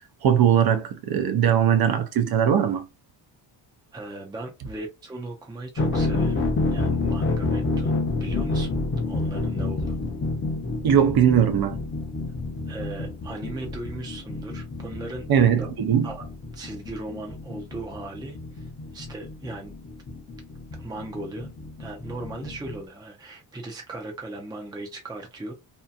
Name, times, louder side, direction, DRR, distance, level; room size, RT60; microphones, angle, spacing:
voice 1, 0.2-2.9 10.8-11.8 15.3-16.1, right 9 dB, 55° right, 0.6 m, -20 dB
voice 2, 3.9-8.8 9.1-10.1 12.7-15.7 16.0-16.3 16.5-19.7 20.8-21.5 21.8-25.5, right 2 dB, 10° right, 0.5 m, -38 dB
sound 1, 5.8-22.8, left 3 dB, 30° left, 0.7 m, -29 dB
2.7 x 2.4 x 2.3 m
cardioid pair, 125°, 44 cm